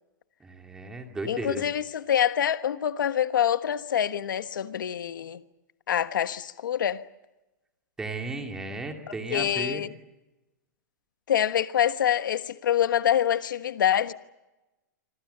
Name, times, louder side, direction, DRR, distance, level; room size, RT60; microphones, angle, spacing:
voice 1, 0.4-1.6 8.0-9.8, right 2 dB, 5° right, 2.3 m, -35 dB
voice 2, 1.3-5.4 5.9-7.0 9.3-9.9 11.3-14.1, left 10 dB, 85° left, 1.3 m, -25 dB
26.5 x 26.0 x 6.8 m
supercardioid pair, 175°, 10 cm